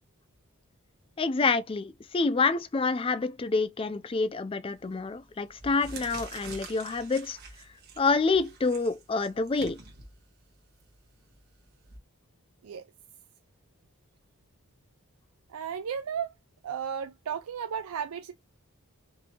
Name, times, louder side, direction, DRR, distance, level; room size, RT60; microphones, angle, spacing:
voice 1, 1.2-7.4 8.0-9.8, left 4 dB, 25° left, 0.3 m, -27 dB
sound 1, 4.7-5.0 5.5-12.0, right 4 dB, 45° right, 1.6 m, -47 dB
voice 2, 15.5-16.3 16.6-18.3, right 7 dB, 85° right, 0.4 m, -34 dB
5.2 x 2.7 x 2.8 m
head